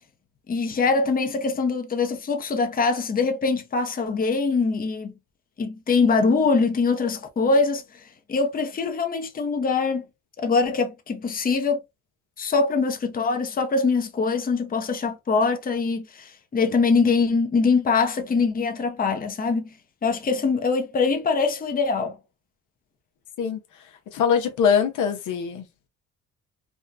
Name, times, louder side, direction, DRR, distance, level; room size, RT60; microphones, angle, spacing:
voice 1, 0.5-5.1 5.6-7.8 8.3-10.0 10.4-11.8 12.4-19.7 20.0-22.2, left 4 dB, 30° left, 0.7 m, -23 dB
voice 2, 24.1-25.6, left 7 dB, 80° left, 0.9 m, -22 dB
3.6 x 2.2 x 2.5 m
cardioid pair, 90°, 30 cm